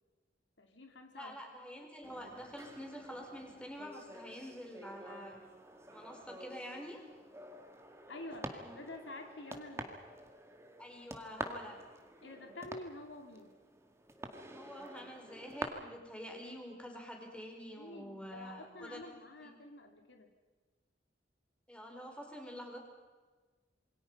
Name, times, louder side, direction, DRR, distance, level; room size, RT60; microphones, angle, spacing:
voice 1, 0.6-1.3 8.1-10.0 12.2-13.5 17.8-20.3, left 2 dB, 80° left, 4 dB, 2.9 m, -48 dB
voice 2, 1.1-5.4 5.9-7.0 8.5-8.7 10.8-11.8 14.5-19.0 19.4-19.5 21.7-22.8, equal, 5° left, 1 dB, 4.7 m, -47 dB
sound 1, 2.0-15.6, right 1 dB, 15° right, 2.0 m, -48 dB
27.5 x 23.5 x 5.6 m, 1.4 s
head